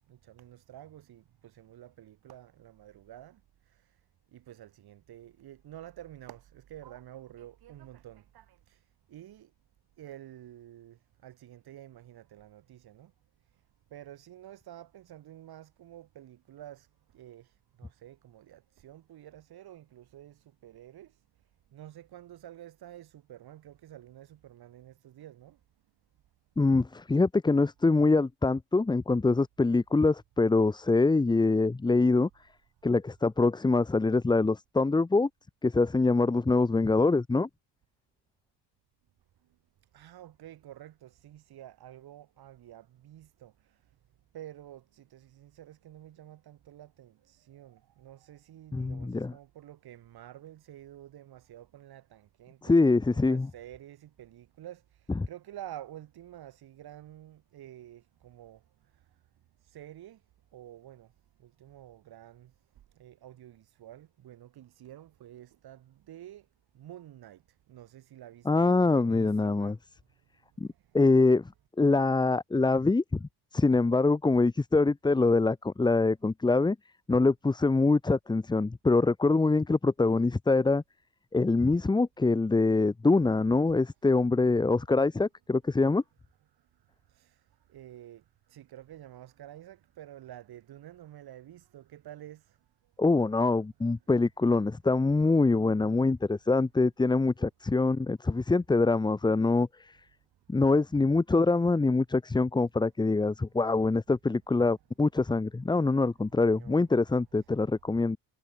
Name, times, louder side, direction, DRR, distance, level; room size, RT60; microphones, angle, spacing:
voice 1, 0.2-3.4 4.3-8.8 9.1-9.5 10.0-11.0 11.2-13.1 13.9-16.9 17.1-17.5 17.8-21.1 21.7-25.5 39.9-43.5 44.3-54.8 55.3-58.6 59.7-60.2 60.5-61.1 61.6-62.5 63.0-66.4 66.8-67.4 67.7-69.7 87.2-87.3 87.7-88.2 88.5-92.4 106.5-106.9, right 12 dB, 55° right, 3.5 m, -49 dB
voice 2, 26.6-32.3 32.8-35.3 35.6-37.5 48.7-49.3 52.6-53.5 68.5-69.8 70.6-70.7 70.9-71.4 71.8-73.2 73.5-76.8 77.1-80.8 81.3-86.0 93.0-99.9 100.5-108.2, left 3 dB, 10° left, 0.8 m, -24 dB
cardioid pair, 130°, 44 cm